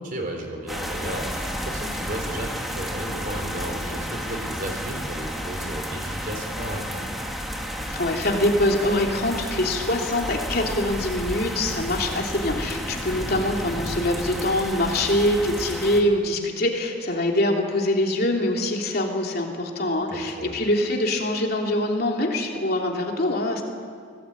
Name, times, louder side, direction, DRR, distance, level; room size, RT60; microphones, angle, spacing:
voice 1, 0.0-7.1 20.1-20.6, right 1 dB, 45° right, 3 dB, 4.1 m, -34 dB
sound 1, 0.7-16.0, equal, ahead, 2.2 m, -32 dB
voice 2, 7.9-23.6, left 1 dB, 55° left, 1 dB, 3.1 m, -24 dB
24.5 x 17.5 x 8.7 m, 2.2 s
head